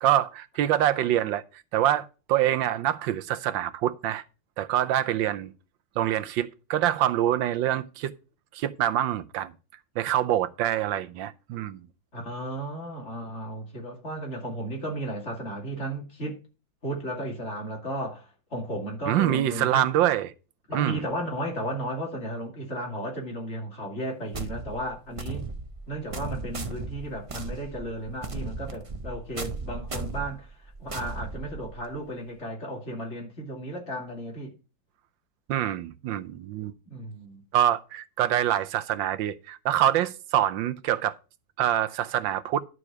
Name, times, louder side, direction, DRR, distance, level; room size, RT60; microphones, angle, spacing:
voice 1, 0.0-1.4 1.7-4.2 4.6-5.5 6.0-8.1 8.5-9.5 10.0-11.8 19.1-20.3 20.7-21.0 35.5-36.7 37.5-41.1 41.6-42.6, right 12 dB, 90° right, 1.4 m, -25 dB
voice 2, 12.1-16.4 16.8-19.8 20.7-25.5 25.9-30.5 30.8-34.5 36.9-37.4, right 1 dB, 35° left, 2.9 m, -34 dB
sound 1, 24.3-32.0, right 3 dB, 50° right, 0.4 m, -36 dB
11.0 x 5.0 x 6.0 m
omnidirectional pair, 2.0 m